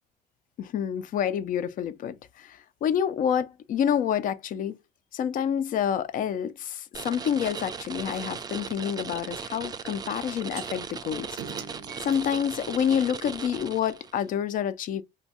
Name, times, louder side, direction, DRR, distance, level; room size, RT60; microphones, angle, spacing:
voice 1, 0.6-4.8 5.1-11.3 12.0-15.0, left 8 dB, 55° left, 0.4 m, -28 dB
sound 1, 6.9-14.2, right 6 dB, 25° right, 0.3 m, -38 dB
sound 2, 10.5-10.7 11.4-13.6, right 7 dB, 90° right, 0.6 m, -43 dB
2.7 x 2.2 x 3.9 m
cardioid pair, 110°, 17 cm